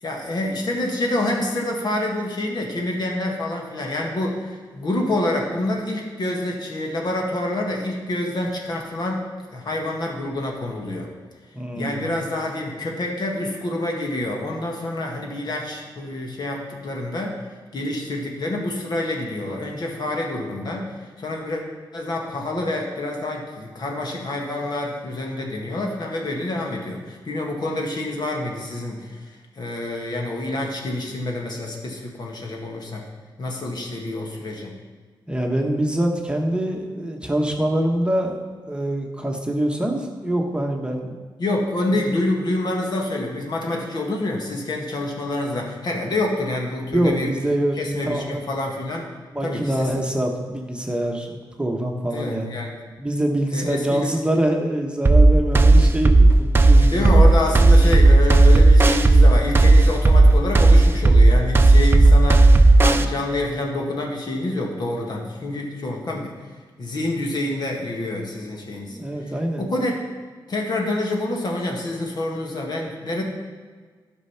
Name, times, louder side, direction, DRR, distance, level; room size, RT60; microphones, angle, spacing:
voice 1, 0.0-9.2 9.5-11.1 11.7-17.4 17.7-21.6 21.9-33.0 33.4-34.7 41.4-47.3 47.7-49.1 49.4-49.9 52.1-52.7 53.5-54.1 56.8-66.3 66.8-70.1 70.5-73.2, left 1 dB, 55° left, 0 dB, 1.9 m, -27 dB
voice 2, 11.5-12.1 35.3-41.2 46.9-48.4 49.3-52.5 53.0-57.1 68.9-69.6, right 1 dB, 10° right, 1 dB, 1.2 m, -24 dB
sound 1, 55.1-63.1, right 2 dB, 25° right, 0.6 m, -12 dB
12.0 x 5.5 x 5.8 m, 1.5 s
cardioid pair, 95°, 8 cm